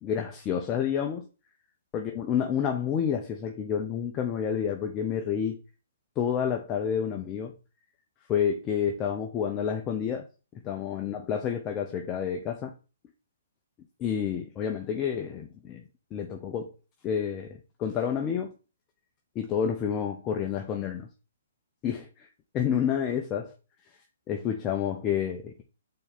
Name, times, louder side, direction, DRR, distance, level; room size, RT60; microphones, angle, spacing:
voice 1, 0.0-1.3 1.9-5.6 6.2-7.5 8.3-10.3 10.6-12.7 14.0-15.8 16.1-16.7 17.0-18.5 19.3-21.1 21.8-22.3 22.5-23.5 24.3-25.6, left 8 dB, 25° left, 0.7 m, -29 dB
4.4 x 4.2 x 5.4 m
hypercardioid pair, 135°, 0 cm